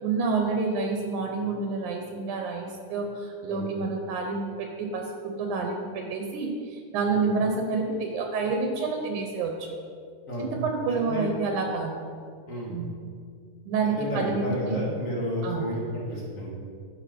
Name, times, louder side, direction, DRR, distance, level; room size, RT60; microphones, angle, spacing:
voice 1, 0.0-9.8 10.4-11.9 12.7-13.0 13.7-14.8 15.4-15.7, right 4 dB, 75° right, 3 dB, 2.2 m, -28 dB
voice 2, 10.9-11.3 12.5-12.7 14.0-16.5, equal, 45° left, -3 dB, 1.1 m, -31 dB
10.0 x 6.3 x 5.1 m, 2.2 s
omnidirectional pair, 3.7 m